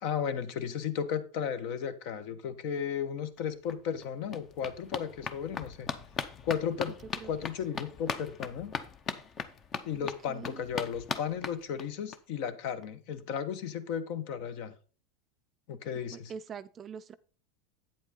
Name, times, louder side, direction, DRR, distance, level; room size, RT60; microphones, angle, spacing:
voice 1, 0.0-5.9 6.4-7.0 7.2-8.7 9.8-14.7 15.7-16.3, left 8 dB, 55° left, 1.1 m, -34 dB
sound 1, 3.4-3.5 3.7-12.2 12.5-12.6 12.8-12.9 13.2-13.3, left 5 dB, 25° left, 0.7 m, -39 dB
voice 2, 6.9-7.3 10.0-10.6 16.1-17.1, right 7 dB, 25° right, 0.4 m, -44 dB
8.6 x 7.9 x 3.8 m
supercardioid pair, 145°, 0 cm